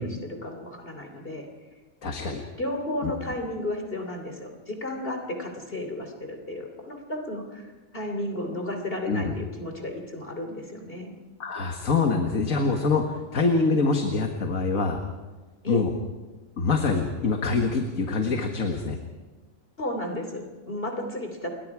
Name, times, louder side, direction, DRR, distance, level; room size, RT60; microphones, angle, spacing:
voice 1, 0.0-1.5 2.6-11.1 15.6-15.9 19.8-21.5, left 1 dB, 40° left, 4 dB, 3.2 m, -33 dB
voice 2, 2.0-2.4 3.0-3.1 9.1-9.3 11.4-15.0 15.7-15.9 16.6-19.0, left 4 dB, 75° left, 3 dB, 2.1 m, -25 dB
29.0 x 22.5 x 4.8 m, 1.3 s
omnidirectional pair, 1.4 m